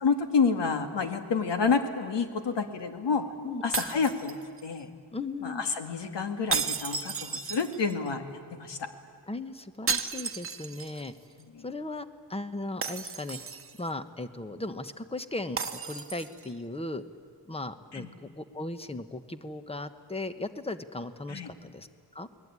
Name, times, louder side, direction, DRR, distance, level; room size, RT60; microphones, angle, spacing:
voice 1, 0.0-3.2 3.6-4.9 5.4-8.2 8.5-8.9 11.5-11.6 17.9-18.1 21.3-21.5, left 5 dB, 85° left, 7 dB, 2.3 m, -29 dB
sound 1, 3.7-4.8 6.5-8.1 9.9-11.1 11.4-11.5 12.8-13.9 15.6-16.5, right 5 dB, 30° right, 1.2 m, -33 dB
voice 2, 5.1-5.6 9.3-11.1 11.6-13.4 13.8-15.6 15.9-17.0 17.5-21.9 22.1-22.3, left 2 dB, 15° left, 11 dB, 1.1 m, -37 dB
29.5 x 21.0 x 9.7 m, 2.2 s
wide cardioid pair, 145°, 41 cm